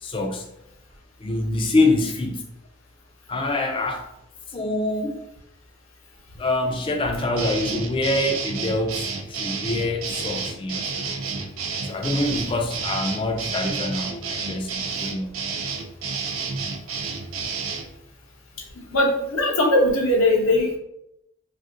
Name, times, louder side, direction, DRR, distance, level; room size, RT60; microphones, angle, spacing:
voice 1, 0.0-0.5 1.2-2.5 3.3-4.0 4.5-5.2 6.4-11.1 11.8-15.4, left 2 dB, 25° left, 3 dB, 0.4 m, -25 dB
sound 1, 7.4-17.9, right 5 dB, 85° right, 0.5 m, -30 dB
voice 2, 18.7-20.8, left 1 dB, 80° left, -2 dB, 0.8 m, -20 dB
3.5 x 2.5 x 2.5 m, 0.82 s
head